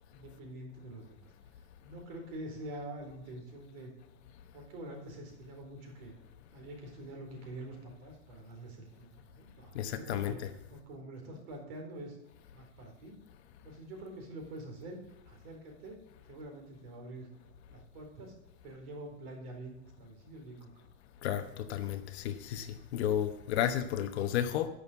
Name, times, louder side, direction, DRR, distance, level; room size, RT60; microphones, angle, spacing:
voice 1, 0.1-1.3 1.8-3.9 4.5-6.1 6.5-10.4 10.7-12.2 12.5-13.2 13.6-15.0 15.3-16.0 16.3-17.3 17.7-18.3 18.6-20.9, right 1 dB, 45° right, 2 dB, 4.1 m, -46 dB
voice 2, 9.7-10.5 21.2-24.7, left 10 dB, 50° left, 8 dB, 1.0 m, -32 dB
11.0 x 6.5 x 8.4 m, 0.82 s
supercardioid pair, 175°, 42 cm